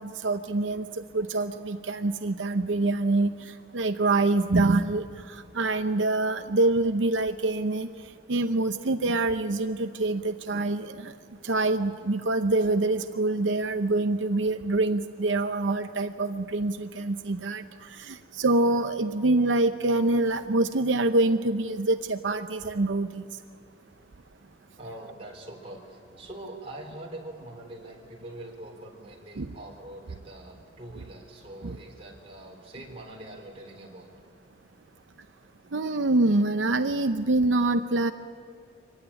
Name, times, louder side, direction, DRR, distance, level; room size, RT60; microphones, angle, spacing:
voice 1, 0.0-7.9 8.3-11.1 11.4-23.3 29.4-29.5 31.6-31.8 35.7-38.1, right 2 dB, 85° right, 8 dB, 0.7 m, -25 dB
voice 2, 24.8-34.1, right 1 dB, 30° right, 0 dB, 3.5 m, -43 dB
24.5 x 16.0 x 9.9 m, 2.4 s
head